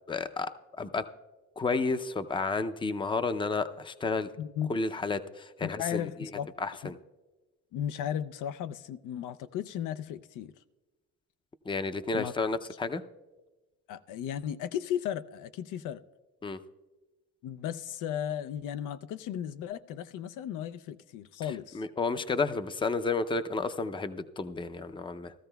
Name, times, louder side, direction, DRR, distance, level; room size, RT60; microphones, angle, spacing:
voice 1, 0.1-1.1 1.6-4.3 4.7-6.1 6.6-7.0 11.7-13.0 16.4-16.6 21.7-25.3, left 3 dB, 15° left, 0.5 m, -31 dB
voice 2, 4.4-4.7 5.6-6.5 6.8-6.9 7.7-10.5 12.1-12.3 13.9-16.0 17.4-21.8, left 10 dB, 90° left, 0.5 m, -35 dB
16.5 x 13.0 x 2.3 m
cardioid pair, 90°, 30 cm